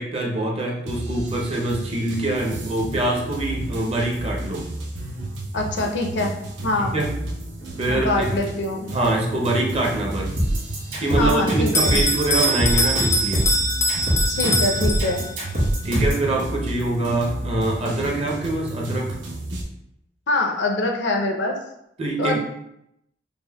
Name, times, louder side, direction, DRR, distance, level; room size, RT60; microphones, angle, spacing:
voice 1, 0.0-4.7 6.8-7.1 7.8-8.3 8.9-10.3 11.0-13.5 15.8-19.2 22.0-22.4, right 2 dB, 35° right, -1 dB, 0.6 m, -24 dB
sound 1, 0.9-19.6, right 1 dB, 80° right, 0.6 m, -32 dB
voice 2, 5.5-6.3 6.6-6.9 7.9-8.9 11.2-12.0 14.3-15.2 20.3-21.6 22.2-22.4, left 2 dB, 75° left, 1 dB, 0.6 m, -24 dB
sound 2, 10.4-16.3, right 1 dB, 55° right, 1.4 m, -23 dB
Bell, 11.7-15.5, equal, 15° left, 0.3 m, -23 dB
5.2 x 2.1 x 2.2 m, 0.79 s
head